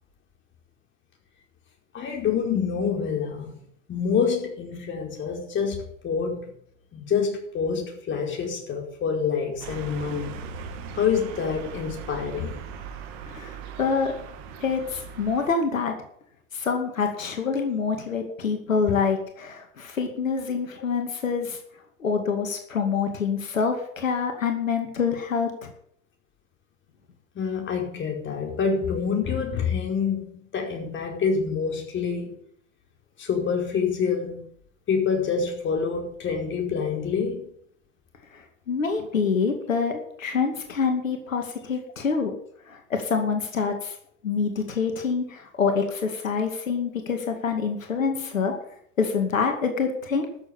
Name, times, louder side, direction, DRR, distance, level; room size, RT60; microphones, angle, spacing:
voice 1, 1.9-3.6 3.9-6.5 6.9-10.4 10.9-12.6 27.3-32.4 33.2-34.4 34.9-37.5, left 6 dB, 30° left, 4.9 m, -27 dB
sound 1, 9.6-15.5, right 6 dB, 55° right, 2.8 m, -39 dB
voice 2, 13.3-14.1 14.6-15.9 16.5-21.6 22.0-25.5 38.7-42.4 42.7-43.9 44.2-48.5 49.0-50.3, left 5 dB, 85° left, 2.4 m, -26 dB
13.0 x 7.7 x 8.7 m
hypercardioid pair, 100°, 39 cm